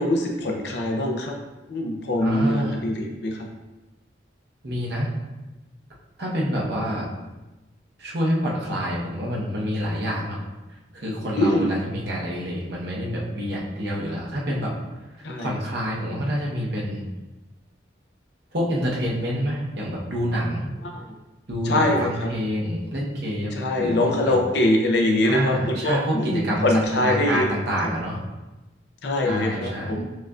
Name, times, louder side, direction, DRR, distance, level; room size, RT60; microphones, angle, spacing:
voice 1, 0.0-1.3 1.7-3.5 11.4-11.7 15.2-15.6 20.8-21.0 21.6-22.3 23.6-27.5 29.0-30.0, left 1 dB, 60° left, 1 dB, 0.5 m, -23 dB
voice 2, 2.2-2.8 4.6-5.1 6.2-7.1 8.0-10.4 10.9-14.7 15.4-17.0 18.5-20.7 21.5-24.4 25.2-28.2 29.2-30.0, equal, 60° right, -4 dB, 0.8 m, -27 dB
6.3 x 2.5 x 2.3 m, 1.1 s
head